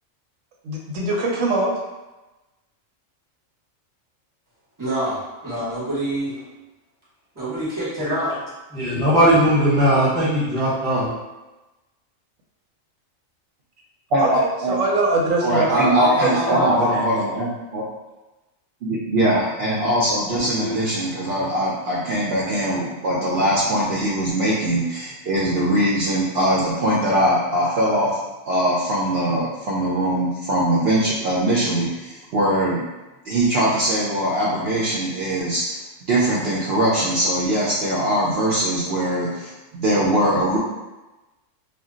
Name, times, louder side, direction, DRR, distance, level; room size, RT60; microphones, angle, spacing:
voice 1, 0.6-1.7 14.2-15.8 16.2-17.0, right 2 dB, 85° right, -1 dB, 1.0 m, -23 dB
voice 2, 4.8-6.3 7.3-8.4 15.7-16.7, right 1 dB, 15° right, -9 dB, 0.9 m, -25 dB
voice 3, 8.7-11.1 15.8-15.9 20.6-20.8, equal, 5° left, -9 dB, 0.4 m, -18 dB
voice 4, 14.1-14.7 15.4-17.8 18.8-28.1 28.5-32.8 33.2-40.6, right 1 dB, 65° right, -6 dB, 0.7 m, -21 dB
2.2 x 2.1 x 3.7 m, 1.1 s
omnidirectional pair, 1.3 m